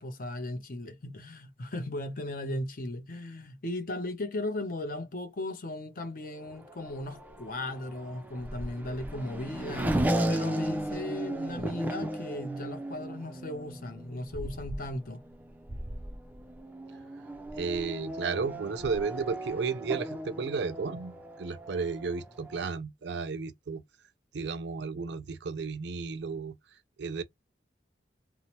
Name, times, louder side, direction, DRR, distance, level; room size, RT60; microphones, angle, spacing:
voice 1, 0.0-10.0 10.3-15.2, left 1 dB, 50° left, 0.6 m, -37 dB
Race car auto racing / Accelerating revving vroom, 6.4-22.6, right 1 dB, 10° right, 0.3 m, -36 dB
voice 2, 17.6-23.8 24.3-26.5 27.0-27.2, right 4 dB, 70° right, 0.4 m, -33 dB
2.8 x 2.0 x 2.9 m
head